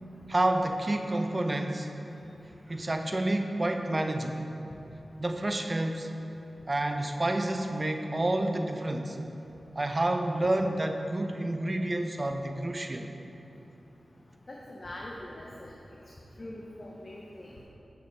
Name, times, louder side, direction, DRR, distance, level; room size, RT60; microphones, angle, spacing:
voice 1, 0.3-1.9 2.7-4.5 5.2-6.1 6.7-9.2 9.8-13.1, right 1 dB, 35° right, 5 dB, 0.6 m, -29 dB
voice 2, 14.5-15.7 16.4-17.5, left 1 dB, 50° left, -3 dB, 0.8 m, -42 dB
7.3 x 6.9 x 3.3 m, 3.0 s
cardioid pair, 45°, 0 cm